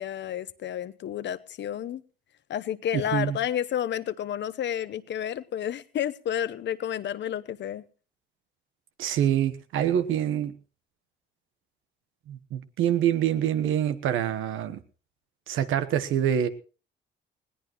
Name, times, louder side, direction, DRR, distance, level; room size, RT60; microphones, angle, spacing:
voice 1, 0.0-2.0 2.5-7.8, left 10 dB, 65° left, 0.9 m, -31 dB
voice 2, 2.9-3.4 9.0-10.5 12.3-14.8 15.5-16.5, right 10 dB, 85° right, 1.2 m, -26 dB
20.5 x 17.5 x 3.0 m
cardioid pair, 90°, 20 cm